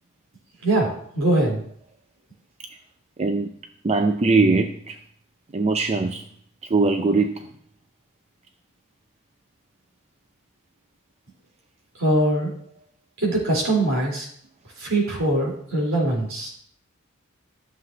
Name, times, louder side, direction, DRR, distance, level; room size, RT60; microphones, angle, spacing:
voice 1, 0.6-1.6 12.0-12.5 13.2-14.3 14.8-16.5, right 1 dB, 70° right, -3 dB, 4.2 m, -22 dB
voice 2, 3.2-3.5 3.8-5.0 5.5-6.2 6.6-7.4, right 3 dB, 30° right, 5 dB, 0.5 m, -21 dB
14.0 x 7.6 x 3.0 m, 0.63 s
head